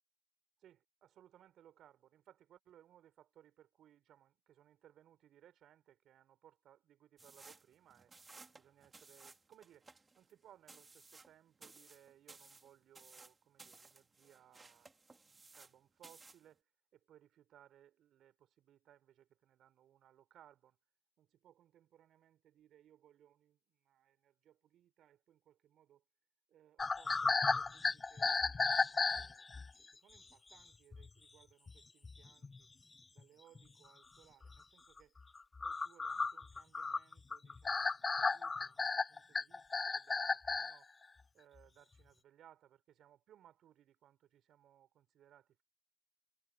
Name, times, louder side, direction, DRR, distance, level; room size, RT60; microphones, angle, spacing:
voice 1, 0.6-8.1 8.5-14.9 15.2-16.7 16.9-20.8 21.2-26.0 26.5-29.5 29.8-32.7 33.1-35.2 35.6-41.1 41.3-45.6, right 11 dB, 65° right, 4.3 m, -65 dB
sound 1, 7.2-15.8 16.0-16.5, right 3 dB, 25° right, 3.1 m, -59 dB
sound 2, 26.8-29.7 30.5-30.6 30.9-31.1 31.7-31.8 32.0-32.6 33.2-33.3 33.6-33.7 34.4-34.6 35.0-40.8, left 4 dB, 30° left, 0.3 m, -34 dB
hypercardioid pair, 60°, 0 cm